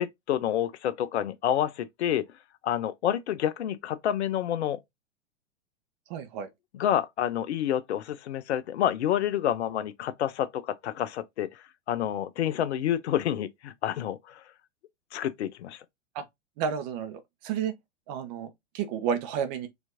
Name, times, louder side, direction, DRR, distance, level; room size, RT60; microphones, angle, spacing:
voice 1, 0.0-2.2 2.6-4.8 6.7-14.4 15.1-15.8, left 10 dB, 65° left, 0.5 m, -28 dB
voice 2, 6.1-6.5 16.1-16.2 16.6-17.7 18.1-19.7, right 7 dB, 35° right, 0.7 m, -31 dB
4.3 x 2.5 x 2.5 m
figure-of-eight pair, 100°, 37 cm